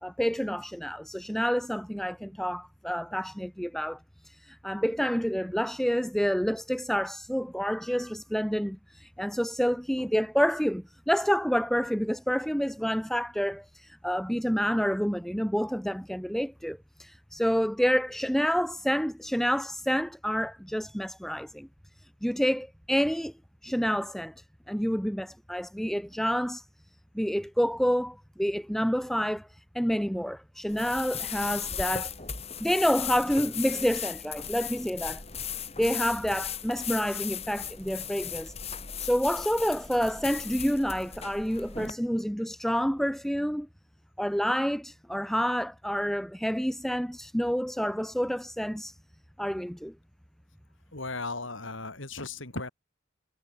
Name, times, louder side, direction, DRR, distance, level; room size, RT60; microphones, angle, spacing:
voice 1, 0.0-21.7 22.0-23.3 23.6-26.6 27.1-32.1 32.6-35.2 35.8-38.5 39.0-43.7 44.2-49.0 49.4-49.9, equal, ahead, 3.3 m, -28 dB
sound 1, 30.7-41.9, left 8 dB, 30° left, 5.1 m, -36 dB
voice 2, 50.9-52.7, left 3 dB, 75° left, 5.3 m, -36 dB
head